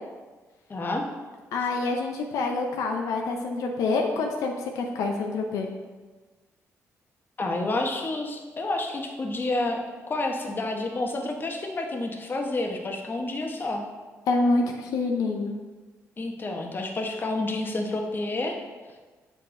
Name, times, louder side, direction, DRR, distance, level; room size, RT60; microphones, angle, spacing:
voice 1, 0.7-1.0 7.4-9.8 10.1-13.9 16.2-18.6, left 2 dB, 35° left, 2 dB, 1.0 m, -29 dB
voice 2, 1.5-5.7 14.3-15.6, left 3 dB, 85° left, 2 dB, 0.6 m, -26 dB
6.6 x 5.0 x 3.7 m, 1.3 s
cardioid pair, 70°, 6 cm